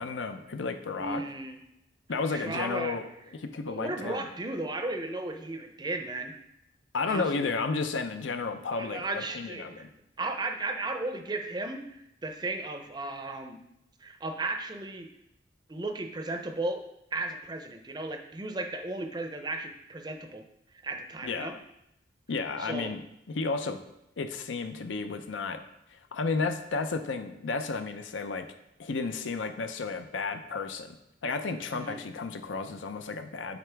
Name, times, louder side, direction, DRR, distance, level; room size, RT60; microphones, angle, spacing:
voice 1, 0.0-1.2 2.1-3.0 3.3-4.3 6.9-9.9 21.2-21.5 22.3-23.8 24.2-25.6 25.9-28.5 28.8-31.0 31.2-33.6, left 4 dB, 85° left, 8 dB, 0.5 m, -32 dB
voice 2, 1.0-1.6 2.3-3.0 3.7-6.3 7.0-7.5 8.8-9.8 10.2-13.6 14.0-15.1 15.7-16.8 17.1-20.4 20.8-21.5 22.6-22.9 31.7-32.0, right 2 dB, 20° right, 5 dB, 0.5 m, -35 dB
8.1 x 3.9 x 3.4 m, 0.82 s
head